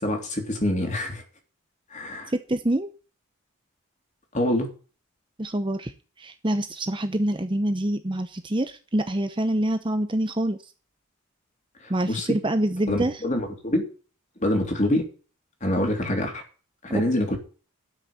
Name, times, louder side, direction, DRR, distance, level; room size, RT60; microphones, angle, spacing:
voice 1, 0.0-1.2 1.9-2.3 4.3-4.7 11.8-12.3 12.9-13.8 14.4-15.0 15.6-16.4 16.8-17.4, left 1 dB, 35° left, 3 dB, 3.4 m, -25 dB
voice 2, 2.3-2.9 5.4-5.9 6.2-10.6 11.9-13.2 16.9-17.1, right 1 dB, 20° right, 9 dB, 0.8 m, -26 dB
12.5 x 6.5 x 8.6 m, 0.37 s
head